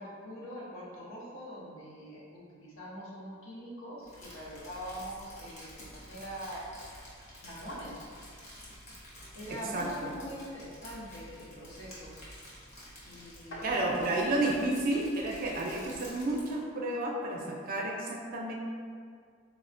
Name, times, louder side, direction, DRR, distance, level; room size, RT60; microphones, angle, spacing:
voice 1, 0.0-6.7 7.4-8.0 9.3-12.2 13.1-13.8, equal, 70° left, -5 dB, 0.7 m, -43 dB
Crumpling crinkling, 4.0-16.6, equal, 35° left, 0.7 m, -50 dB
voice 2, 13.6-18.5, right 2 dB, 40° right, -1 dB, 0.4 m, -31 dB
4.1 x 2.1 x 2.5 m, 2.1 s
head